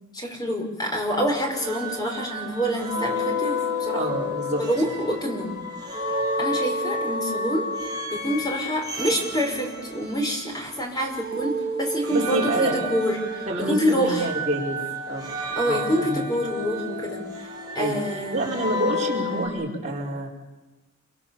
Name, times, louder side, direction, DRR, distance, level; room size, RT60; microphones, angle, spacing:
voice 1, 0.1-4.0 4.6-5.6 6.4-7.7 8.1-14.3 15.6-17.5 17.8-18.5, equal, 20° left, 2 dB, 5.2 m, -27 dB
sound 1, 1.0-10.8 11.1-19.5, left 1 dB, 20° right, 5.7 m, -31 dB
voice 2, 3.9-4.6 12.1-12.7 13.5-14.8 15.1-15.3 15.6-16.2 17.7-18.0 18.3-20.3, right 2 dB, 35° right, -3 dB, 5.4 m, -27 dB
28.5 x 25.0 x 7.2 m, 1.1 s
head